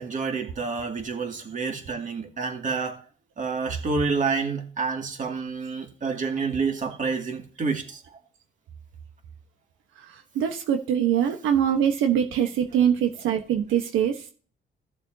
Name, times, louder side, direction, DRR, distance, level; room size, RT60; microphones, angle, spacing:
voice 1, 0.0-3.0 3.4-8.0, right 4 dB, 40° right, 4 dB, 2.2 m, -28 dB
voice 2, 10.3-14.3, right 9 dB, 90° right, 5 dB, 1.2 m, -23 dB
15.0 x 6.9 x 2.8 m, 0.40 s
cardioid pair, 90°, 20 cm